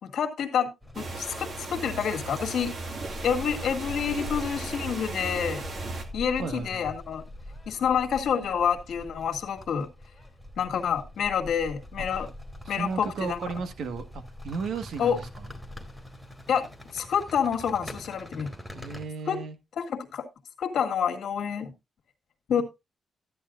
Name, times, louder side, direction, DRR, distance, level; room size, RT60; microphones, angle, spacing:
voice 1, 0.0-2.8 3.2-5.7 6.1-7.2 7.7-9.9 10.6-12.3 12.7-13.4 15.0-15.2 16.5-18.5 19.3-19.4 19.8-20.3 20.6-21.7 22.5-22.6, left 7 dB, 75° left, 1.9 m, -28 dB
sound 1, 0.8-19.0, left 1 dB, 5° right, 2.2 m, -44 dB
sound 2, 0.9-6.0, right 3 dB, 50° right, 2.2 m, -36 dB
voice 2, 6.4-6.9 12.0-12.3 12.6-15.5 18.7-19.5 22.6-22.7, right 5 dB, 80° right, 1.6 m, -35 dB
13.0 x 9.8 x 2.6 m
wide cardioid pair, 150°, 0 cm